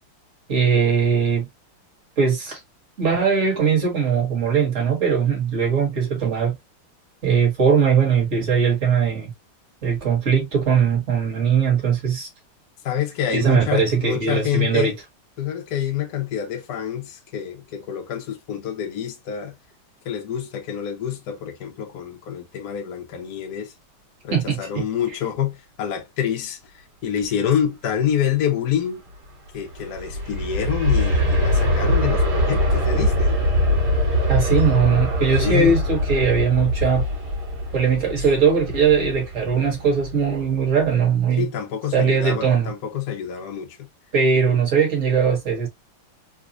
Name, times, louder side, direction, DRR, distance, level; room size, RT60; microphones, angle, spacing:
voice 1, 0.5-1.5 2.2-2.6 3.0-6.5 7.2-9.3 9.8-12.3 13.3-14.9 24.3-24.8 34.3-37.0 37.7-41.5 41.9-42.7 44.1-45.7, right 6 dB, 35° right, 1.7 m, -20 dB
voice 2, 12.8-14.9 15.4-19.5 20.0-23.7 24.2-29.0 29.5-33.3 35.3-35.7 41.4-43.8, left 9 dB, 65° left, 1.0 m, -27 dB
Aircraft, 29.6-40.4 40.9-41.0, equal, 55° right, 1.9 m, -22 dB
4.1 x 2.4 x 2.5 m
omnidirectional pair, 2.4 m